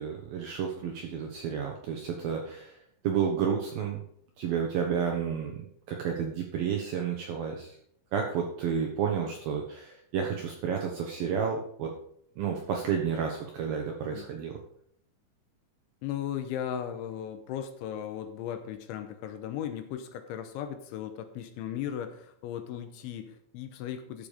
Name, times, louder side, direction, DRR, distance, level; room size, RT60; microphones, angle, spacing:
voice 1, 0.0-2.8 3.0-4.0 4.4-7.8 8.1-11.9 12.4-14.6, right 7 dB, 75° right, 1 dB, 2.2 m, -31 dB
voice 2, 16.0-24.3, left 10 dB, 80° left, 9 dB, 3.0 m, -37 dB
13.0 x 6.9 x 5.0 m, 0.68 s
omnidirectional pair, 5.8 m